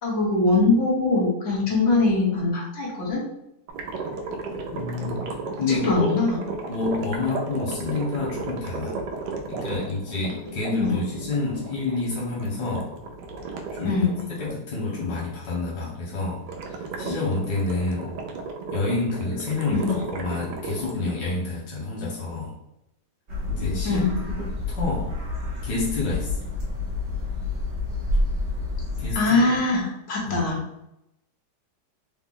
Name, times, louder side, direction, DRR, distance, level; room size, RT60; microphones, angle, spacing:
voice 1, 0.0-3.2 5.6-6.4 10.8-11.0 13.8-14.2 19.7-20.0 23.8-24.2 29.1-30.7, left 3 dB, 50° left, -3 dB, 1.2 m, -22 dB
sound 1, 3.7-14.6 16.5-20.9, right 4 dB, 85° right, 1.3 m, -34 dB
voice 2, 4.7-5.2 5.6-6.1 6.7-9.0 9.5-12.9 13.7-14.0 14.3-18.1 18.7-22.5 23.5-24.1 24.7-25.1 25.6-26.4 29.0-29.5 30.3-30.5, left 3 dB, 90° left, -5 dB, 1.6 m, -28 dB
sound 2, 23.3-29.2, left 2 dB, 50° right, 0.9 m, -28 dB
3.8 x 2.0 x 3.7 m, 0.84 s
omnidirectional pair, 1.8 m